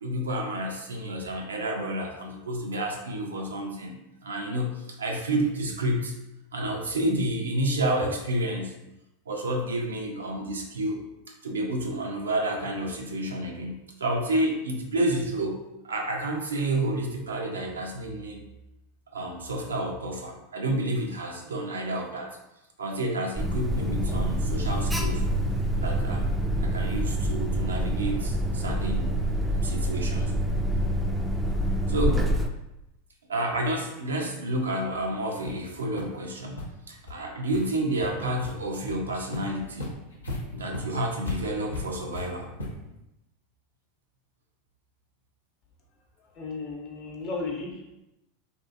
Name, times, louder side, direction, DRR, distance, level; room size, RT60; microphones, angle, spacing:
voice 1, 0.0-4.0 4.2-6.2 6.5-8.7 9.3-11.0 11.4-18.4 19.1-22.4 22.8-25.2 25.8-26.3 26.6-29.1 29.5-30.3 31.9-32.3 33.3-39.9 40.5-42.5, right 1 dB, 85° right, 1 dB, 0.5 m, -30 dB
Alarm, 23.4-32.5, right 1 dB, 10° right, 0.3 m, -26 dB
sound 1, 35.0-35.1 35.5-35.6 36.0-36.1 36.5-36.6 37.1-37.2 37.5-37.7 38.0-38.5 38.9-39.0 39.3-43.0, left 2 dB, 90° left, 0.6 m, -37 dB
voice 2, 46.2-48.0, left 3 dB, 40° left, 0 dB, 0.7 m, -35 dB
2.7 x 2.4 x 2.5 m, 0.90 s
hypercardioid pair, 90°, 0 cm